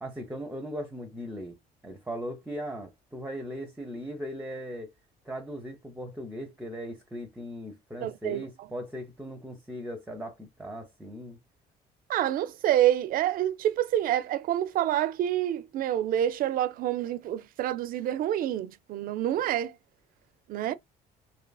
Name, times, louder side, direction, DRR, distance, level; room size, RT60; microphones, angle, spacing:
voice 1, 0.0-1.6 1.8-4.9 5.3-11.4, equal, 5° right, 0.5 m, -38 dB
voice 2, 8.0-8.7 12.1-19.7 20.5-20.7, right 12 dB, 55° right, 0.4 m, -27 dB
2.7 x 2.4 x 2.2 m
cardioid pair, 110°, 17 cm